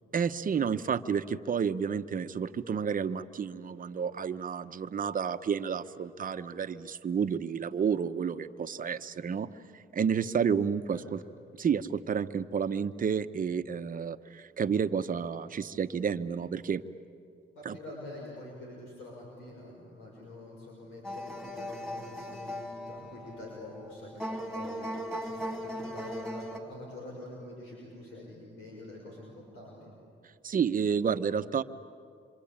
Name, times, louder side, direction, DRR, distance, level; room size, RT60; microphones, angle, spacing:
voice 1, 0.1-9.5 9.7-11.2 11.6-16.8 17.6-17.8 30.4-31.6, right 7 dB, 45° right, 10 dB, 1.0 m, -30 dB
voice 2, 10.9-11.3 17.6-24.9 25.2-29.9, left 1 dB, 90° left, -2 dB, 6.3 m, -46 dB
sound 1, 21.0-26.6, equal, ahead, 3.6 m, -38 dB
27.5 x 24.5 x 8.8 m, 2.3 s
cardioid pair, 90°, 20 cm